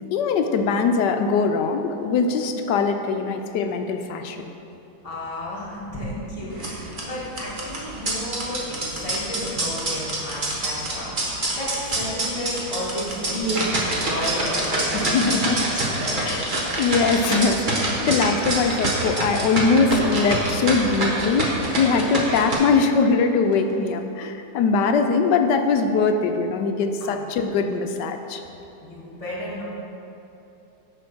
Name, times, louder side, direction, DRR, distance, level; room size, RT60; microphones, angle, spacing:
voice 1, 0.1-4.5 14.9-15.7 16.2-16.5 16.8-28.4, left 4 dB, 75° left, 6 dB, 1.2 m, -22 dB
voice 2, 5.0-16.7 27.0-27.3 28.8-29.6, left 1 dB, 20° left, -7 dB, 2.1 m, -33 dB
sound 1, 6.5-22.5, right 1 dB, 30° right, 1.3 m, -26 dB
sound 2, 19.6-24.1, left 2 dB, 50° left, 1.8 m, -39 dB
9.9 x 5.2 x 6.1 m, 3.0 s
omnidirectional pair, 2.0 m